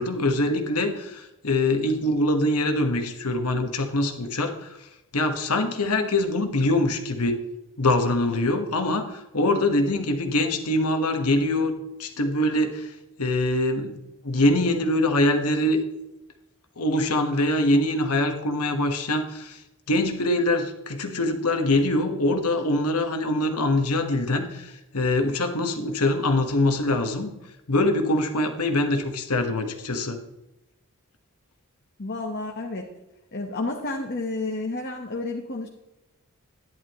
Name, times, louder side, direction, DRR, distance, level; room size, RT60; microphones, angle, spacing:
voice 1, 0.0-4.5 5.1-7.4 7.8-11.7 12.0-12.9 13.2-14.0 14.2-15.8 16.8-19.6 19.9-27.3 27.7-30.2, left 1 dB, 90° left, 6 dB, 1.5 m, -23 dB
voice 2, 32.0-32.9 33.3-35.7, left 2 dB, 45° left, 0 dB, 1.2 m, -31 dB
11.0 x 11.0 x 3.1 m, 0.95 s
head